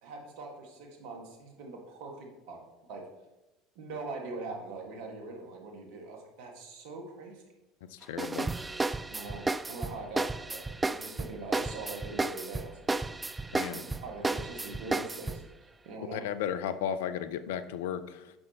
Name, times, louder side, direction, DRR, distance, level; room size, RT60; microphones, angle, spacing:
voice 1, 0.0-2.6 2.9-3.1 3.8-7.4 9.1-13.1 13.4-16.3, right 3 dB, 65° right, 2 dB, 1.8 m, -43 dB
voice 2, 7.9-8.5 13.5-13.8 16.0-18.3, left 9 dB, 75° left, 13 dB, 0.5 m, -34 dB
sound 1, 8.2-15.4, right 3 dB, 15° right, 0.3 m, -33 dB
9.7 x 6.2 x 3.0 m, 1.0 s
hypercardioid pair, 70°, 0 cm